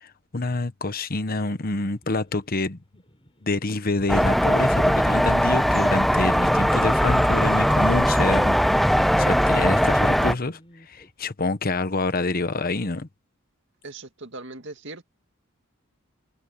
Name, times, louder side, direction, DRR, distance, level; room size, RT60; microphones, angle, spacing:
voice 1, 0.0-2.8 3.4-8.8 9.2-10.6 10.9-13.1, left 3 dB, 45° left, 1.1 m, -27 dB
sound 1, 2.0-11.1, equal, 25° left, 7.6 m, -56 dB
sound 2, 4.1-10.3, equal, ahead, 0.6 m, -20 dB
voice 2, 13.8-15.0, right 2 dB, 60° right, 2.1 m, -39 dB
head